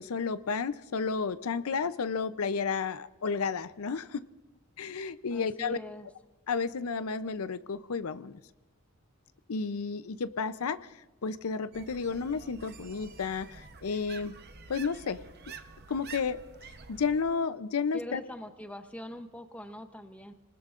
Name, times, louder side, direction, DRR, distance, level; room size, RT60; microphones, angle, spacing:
voice 1, 0.0-4.2 4.8-5.8 6.5-8.4 9.5-10.8 11.2-14.4 14.7-15.2 15.9-16.4 16.9-18.2, left 5 dB, 85° left, 13 dB, 0.6 m, -32 dB
voice 2, 5.3-6.1 17.9-20.3, left 1 dB, 5° left, 7 dB, 0.7 m, -43 dB
sound 1, 11.7-17.2, right 5 dB, 45° right, 0.8 m, -48 dB
28.5 x 19.5 x 2.5 m, 1.0 s
head